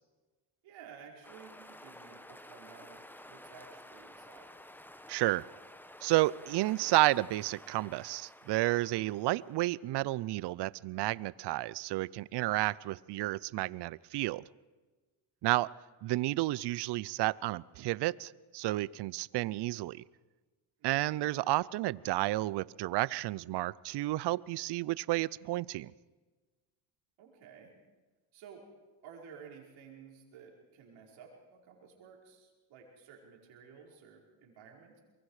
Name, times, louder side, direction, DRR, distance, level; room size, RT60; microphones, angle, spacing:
voice 1, 0.6-4.5 27.2-27.8 28.3-28.7 29.0-35.0, right 6 dB, 75° right, -1 dB, 5.2 m, -54 dB
sound 1, 1.2-9.6, left 1 dB, 5° left, 1.1 m, -52 dB
voice 2, 5.1-5.5 6.0-14.4 15.4-15.7 16.0-20.0 20.8-25.9, right 18 dB, 60° right, 22 dB, 0.6 m, -31 dB
24.0 x 22.5 x 4.9 m, 1.3 s
supercardioid pair, 85°, 46 cm